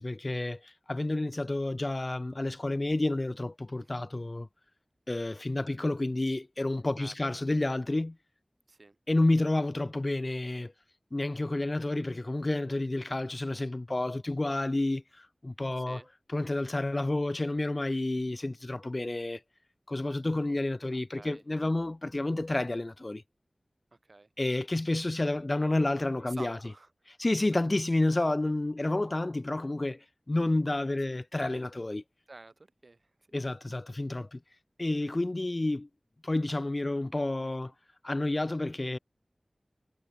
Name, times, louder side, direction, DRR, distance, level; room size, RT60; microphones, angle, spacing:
voice 1, 0.0-4.5 5.1-8.2 9.1-10.7 11.1-16.0 16.3-19.4 19.9-23.2 24.4-26.6 27.2-32.0 33.3-34.4 34.8-35.9 36.2-37.7 38.0-39.0, left 2 dB, 40° left, 0.3 m, -30 dB
voice 2, 3.8-4.1 7.0-7.4 8.7-9.0 15.8-16.1 20.9-21.4 24.0-24.3 26.2-26.9 28.8-29.0 31.1-31.2 32.3-33.0 35.0-35.1 37.4-37.5, right 2 dB, 60° right, 1.1 m, -50 dB
wide cardioid pair, 45°, 0 cm